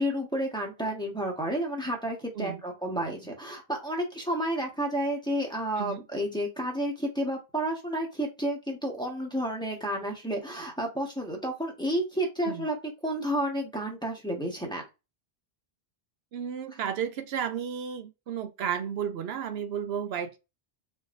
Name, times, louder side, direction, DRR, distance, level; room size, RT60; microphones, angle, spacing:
voice 1, 0.0-12.8 13.0-14.8, right 1 dB, 5° left, 1.2 m, -31 dB
voice 2, 16.3-20.4, right 8 dB, 80° right, 0.8 m, -33 dB
4.0 x 3.7 x 2.5 m
omnidirectional pair, 1.1 m